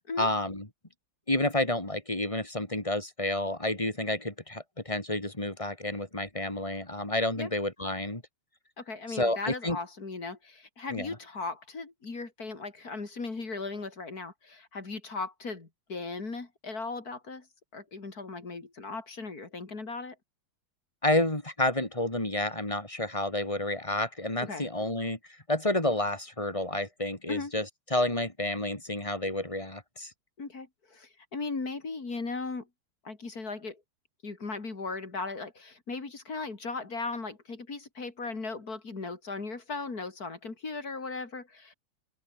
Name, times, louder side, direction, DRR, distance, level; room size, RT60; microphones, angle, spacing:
voice 1, 0.2-0.7 1.3-8.2 9.1-9.8 10.9-11.2 21.0-25.2 25.5-27.7 27.9-30.1, left 1 dB, 15° left, 3.6 m, -30 dB
voice 2, 8.8-17.5 17.7-20.2 24.4-24.7 27.3-27.5 30.4-32.7 33.0-33.8 34.2-41.7, left 3 dB, 45° left, 3.8 m, -37 dB
open air
omnidirectional pair, 2.3 m